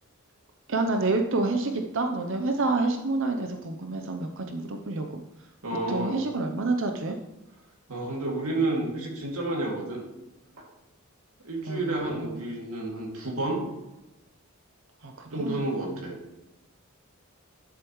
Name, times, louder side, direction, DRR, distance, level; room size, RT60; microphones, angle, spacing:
voice 1, 0.7-5.5 5.9-7.2 11.6-12.4 15.0-15.6, right 3 dB, 60° right, 5 dB, 0.7 m, -28 dB
voice 2, 5.6-6.1 7.9-10.0 11.4-13.6 15.3-16.2, right 2 dB, 75° right, -1 dB, 2.4 m, -30 dB
11.0 x 7.2 x 3.1 m, 0.98 s
head